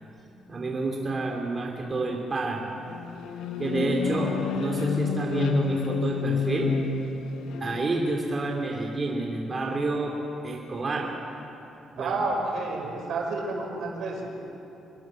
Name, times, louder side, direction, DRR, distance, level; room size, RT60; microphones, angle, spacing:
voice 1, 0.4-2.7 3.6-4.3 4.5-6.7 7.6-10.1 10.4-11.1 12.0-12.1, right 3 dB, 35° right, 0 dB, 3.0 m, -29 dB
sound 1, 2.8-7.9, left 5 dB, 85° left, 1.3 m, -29 dB
voice 2, 4.1-4.9 12.0-14.3, right 3 dB, 70° right, 1 dB, 5.9 m, -31 dB
26.0 x 20.5 x 7.7 m, 2.9 s
cardioid pair, 90°, 0 cm